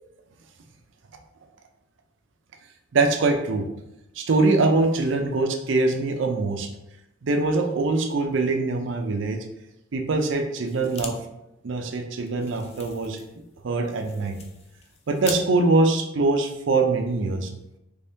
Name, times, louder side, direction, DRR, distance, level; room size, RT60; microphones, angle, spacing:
voice 1, 2.9-3.6 4.2-6.7 7.2-9.4 9.9-11.2 11.6-13.2 13.6-14.4 15.1-17.5, right 3 dB, 70° right, 5 dB, 0.5 m, -23 dB
sound 1, 10.7-11.1 11.4-11.5 11.8-15.4, left 5 dB, 30° left, 0.4 m, -41 dB
3.4 x 3.4 x 2.7 m, 0.87 s
head